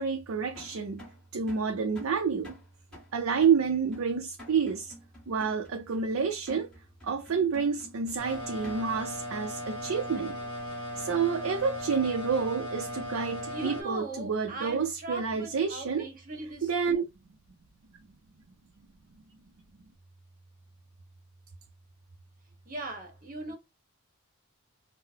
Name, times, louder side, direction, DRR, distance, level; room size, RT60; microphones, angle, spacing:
voice 1, 0.0-2.6 3.1-4.9 5.3-6.7 7.0-10.4 11.0-16.1 16.6-17.0, right 6 dB, 70° right, 0.5 m, -29 dB
sound 1, 0.5-9.1, equal, 5° left, 1.5 m, -50 dB
sound 2, 8.2-13.8, left 1 dB, 20° left, 1.0 m, -37 dB
voice 2, 13.5-16.7 22.6-23.5, right 2 dB, 40° right, 1.0 m, -39 dB
3.8 x 2.1 x 2.7 m
head